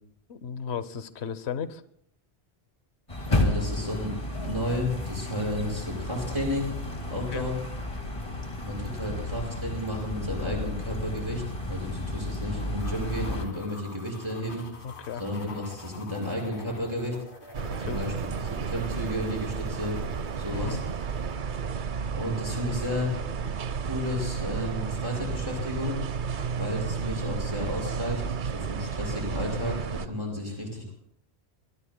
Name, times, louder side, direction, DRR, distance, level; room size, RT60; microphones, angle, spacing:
voice 1, 0.3-1.8 7.1-7.5 14.8-15.2 17.6-18.1 20.5-20.8, left 7 dB, 80° left, 13 dB, 1.1 m, -35 dB
sound 1, 3.1-13.5, left 1 dB, 30° left, 2.0 m, -32 dB
voice 2, 3.3-6.7 7.1-7.6 8.6-14.7 15.2-17.2 17.8-18.1 18.4-20.0 20.4-20.8 22.1-23.2 23.8-26.0 26.6-30.9, left 1 dB, 25° right, -1 dB, 5.6 m, -32 dB
sound 2, 12.8-21.4, left 2 dB, 55° left, 1.9 m, -46 dB
sound 3, 17.5-30.1, right 6 dB, 55° right, 0.8 m, -32 dB
25.0 x 22.0 x 2.2 m, 0.69 s
omnidirectional pair, 1.1 m